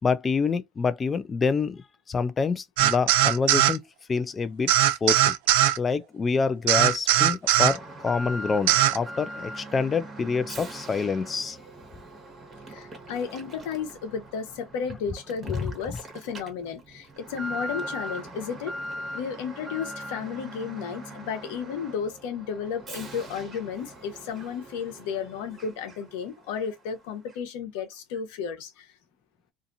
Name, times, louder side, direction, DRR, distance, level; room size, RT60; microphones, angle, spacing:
voice 1, 0.0-1.8 2.1-3.8 4.1-4.7 5.0-5.3 5.8-11.6, left 5 dB, 25° left, 0.4 m, -26 dB
sound 1, 2.8-3.8 4.7-5.8 6.7-7.8 8.7-9.0, right 12 dB, 90° right, 0.5 m, -20 dB
Alarm, 7.6-26.2 26.5-26.7 27.3-27.4, right 1 dB, 25° right, 1.3 m, -41 dB
voice 2, 12.7-18.7 19.1-28.9, left 7 dB, 90° left, 0.9 m, -33 dB
2.7 x 2.5 x 2.5 m
cardioid pair, 125°, 0 cm